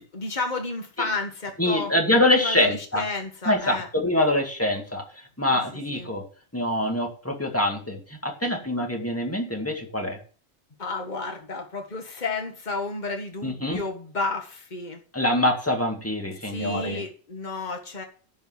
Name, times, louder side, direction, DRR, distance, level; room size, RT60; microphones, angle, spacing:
voice 1, 0.0-1.9 2.4-3.9 5.5-5.6 5.9-6.1 10.8-15.0 16.4-18.0, left 3 dB, 40° left, 3 dB, 1.8 m, -32 dB
voice 2, 1.6-3.0 3.5-6.2 6.5-10.2 13.4-13.8 15.1-17.0, left 1 dB, 10° left, 2 dB, 2.2 m, -25 dB
10.5 x 5.5 x 7.4 m, 0.39 s
omnidirectional pair, 1.1 m